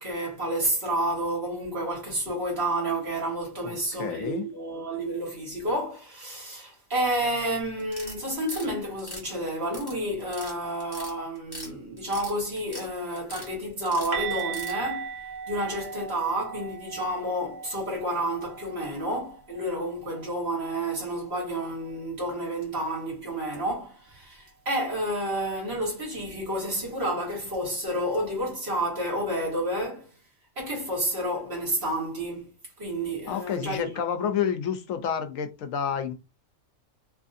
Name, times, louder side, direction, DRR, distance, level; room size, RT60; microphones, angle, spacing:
voice 1, 0.0-15.1 15.5-30.1 30.6-32.5 32.8-33.9 34.2-34.3, right 1 dB, 50° right, 1.6 m, -30 dB
voice 2, 3.6-4.5 33.3-36.1, left 8 dB, 90° left, 1.0 m, -29 dB
sound 1, 7.9-8.7 9.0-9.9 10.2-10.5 10.8-11.7 12.0-12.9 13.2-13.5 13.9-14.7, left 1 dB, 20° left, 1.2 m, -40 dB
sound 2, 14.1-19.9 20.2-20.4 20.7-20.9 24.1-24.2, right 7 dB, 70° right, 1.0 m, -37 dB
3.0 x 2.6 x 2.4 m
omnidirectional pair, 1.4 m